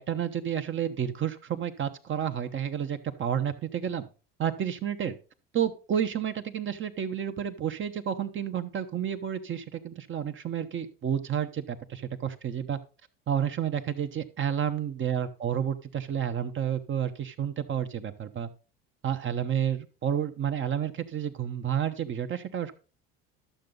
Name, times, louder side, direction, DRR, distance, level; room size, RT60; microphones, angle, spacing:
voice 1, 0.0-4.1 4.4-5.1 5.5-12.8 13.3-18.5 19.0-22.8, right 9 dB, 40° right, 8 dB, 1.2 m, -30 dB
11.5 x 7.0 x 3.9 m, 0.35 s
supercardioid pair, 80°, 29 cm